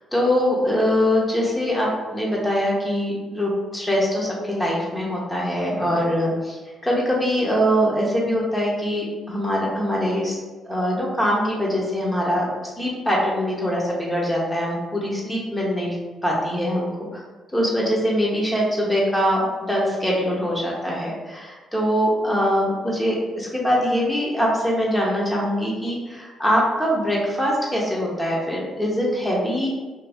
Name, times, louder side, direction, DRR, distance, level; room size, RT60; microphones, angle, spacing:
voice 1, 0.1-10.4 10.6-12.5 12.8-16.0 16.2-17.2 17.5-29.7, equal, 10° left, -4 dB, 0.7 m, -23 dB
2.6 x 2.5 x 3.4 m, 1.3 s
cardioid pair, 90°, 0 cm